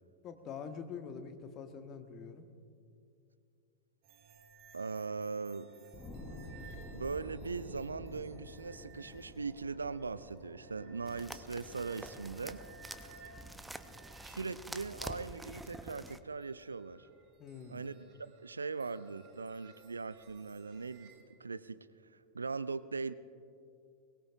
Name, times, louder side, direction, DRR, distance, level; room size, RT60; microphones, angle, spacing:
voice 1, 0.2-2.4 17.4-17.9, left 6 dB, 35° left, 7 dB, 1.3 m, -45 dB
sound 1, 4.0-21.2, right 4 dB, 45° right, 1.8 m, -59 dB
voice 2, 4.7-5.7 6.8-12.6 14.2-17.1 17.7-21.1 21.4-21.8 22.3-23.1, right 4 dB, 80° right, 15 dB, 0.4 m, -40 dB
sound 2, 5.9-16.9 17.4-17.5, equal, 15° left, 3.4 m, -52 dB
sound 3, 11.1-16.2, right 1 dB, 5° right, 0.6 m, -47 dB
22.5 x 19.5 x 2.4 m, 2.4 s
figure-of-eight pair, 90°, 0 cm